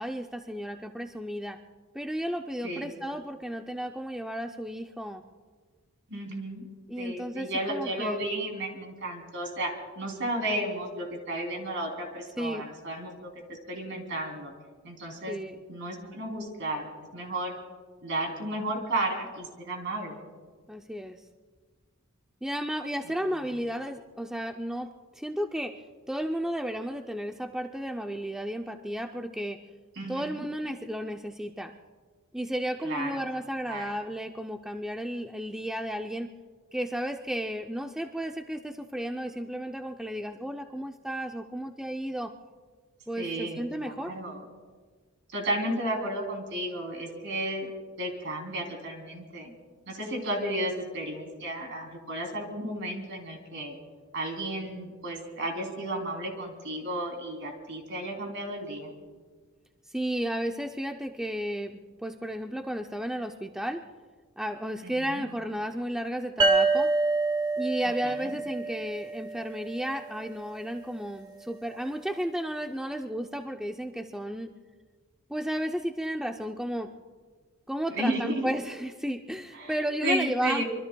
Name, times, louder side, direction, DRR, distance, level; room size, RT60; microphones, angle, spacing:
voice 1, 0.0-1.6 1.9-5.2 6.9-8.3 12.4-12.6 15.3-15.6 20.7-21.2 22.4-25.8 26.1-29.6 30.1-31.7 32.3-36.3 36.7-42.3 43.1-44.1 50.4-50.6 59.9-63.8 64.4-66.9 67.6-74.5 75.3-76.9 77.7-80.6, equal, 5° right, 4 dB, 0.4 m, -33 dB
voice 2, 6.1-6.6 7.0-9.7 10.0-14.5 14.8-15.4 15.7-17.5 18.0-20.2 29.9-30.4 32.8-33.1 33.7-33.8 43.2-44.4 45.3-47.7 48.0-49.5 49.9-53.7 54.1-58.9 64.8-65.2 68.0-68.4 77.9-78.5 79.6-79.7 80.0-80.6, right 1 dB, 55° right, 2 dB, 3.2 m, -33 dB
sound 1, 66.4-69.8, right 3 dB, 20° right, 0.9 m, -27 dB
25.5 x 23.5 x 2.3 m, 1.5 s
head